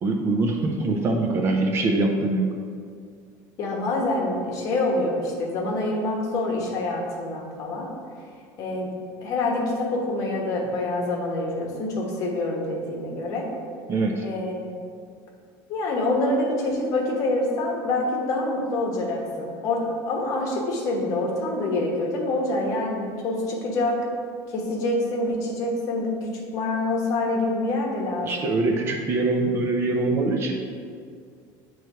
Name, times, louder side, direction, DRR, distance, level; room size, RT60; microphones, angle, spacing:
voice 1, 0.0-2.5 13.9-14.3 28.3-30.5, right 2 dB, 30° right, 2 dB, 0.4 m, -23 dB
voice 2, 3.6-7.9 8.6-8.9 9.2-13.5 14.2-14.7 15.7-24.0 24.5-28.3, left 2 dB, 40° left, 0 dB, 1.1 m, -26 dB
7.9 x 3.1 x 4.7 m, 2.2 s
cardioid pair, 175°, 9 cm